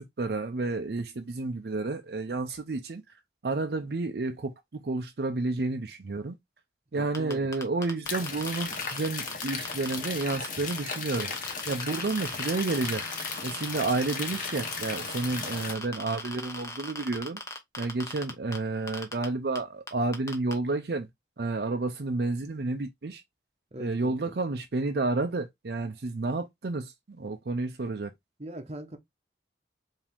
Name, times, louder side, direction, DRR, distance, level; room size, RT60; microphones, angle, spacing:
voice 1, 0.0-3.0 3.4-6.3 6.9-11.3 11.7-13.0 13.4-17.4 17.8-21.1 21.4-23.2 23.8-28.1, right 3 dB, 60° right, 0.5 m, -30 dB
voice 2, 6.9-7.5 12.0-12.1 23.7-24.3 28.4-29.0, right 1 dB, 35° right, 0.9 m, -41 dB
sound 1, 7.1-10.5 10.7-18.6 18.9-19.2 19.5-19.6 19.9-20.5, left 2 dB, 15° left, 0.9 m, -39 dB
sound 2, 8.1-15.7, left 5 dB, 50° left, 1.0 m, -36 dB
4.8 x 2.8 x 3.5 m
head